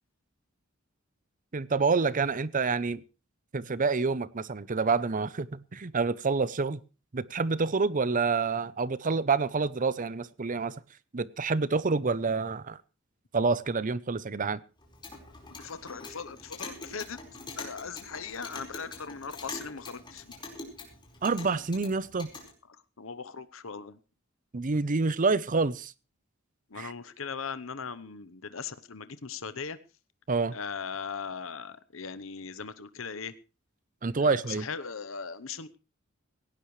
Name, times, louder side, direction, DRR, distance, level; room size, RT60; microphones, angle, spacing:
voice 1, 1.5-3.0 3.5-6.8 7.1-10.7 11.1-12.8 13.3-14.6 21.2-22.3 24.5-25.9 26.8-26.9 30.3-30.5 34.0-34.7, right 4 dB, 40° right, 18 dB, 0.7 m, -27 dB
Clock, 14.8-22.5, left 3 dB, 25° left, 4.8 m, -44 dB
voice 2, 15.6-17.2 17.6-20.3 23.0-24.0 26.7-29.8 30.5-33.3 34.2-35.8, left 5 dB, 75° left, 14 dB, 0.9 m, -39 dB
17.5 x 17.5 x 3.2 m, 0.33 s
head